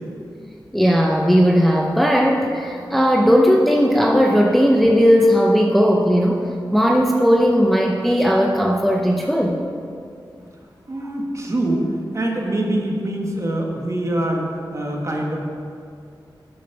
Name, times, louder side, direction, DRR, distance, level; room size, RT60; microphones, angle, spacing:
voice 1, 0.7-9.6, equal, ahead, 0 dB, 0.6 m, -17 dB
voice 2, 10.9-11.9 12.1-14.4 14.7-15.4, right 1 dB, 35° right, -1 dB, 1.5 m, -24 dB
8.7 x 7.2 x 5.8 m, 2.4 s
wide cardioid pair, 100°, 8 cm